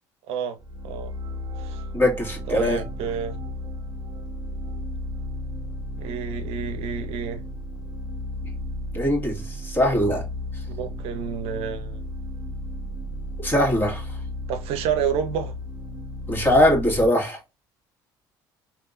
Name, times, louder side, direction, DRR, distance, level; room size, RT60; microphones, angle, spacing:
voice 1, 0.3-0.6 0.8-1.1 1.6-1.8 2.5-3.4 6.0-7.4 10.7-12.0 14.5-15.6, right 8 dB, 65° right, 0.7 m, -29 dB
sound 1, 0.6-17.1, left 1 dB, 40° right, 1.7 m, -34 dB
voice 2, 1.9-2.8 8.9-10.2 13.4-14.1 16.3-17.4, left 1 dB, 20° left, 2.1 m, -21 dB
3.5 x 2.9 x 2.5 m
hypercardioid pair, 65°, 11 cm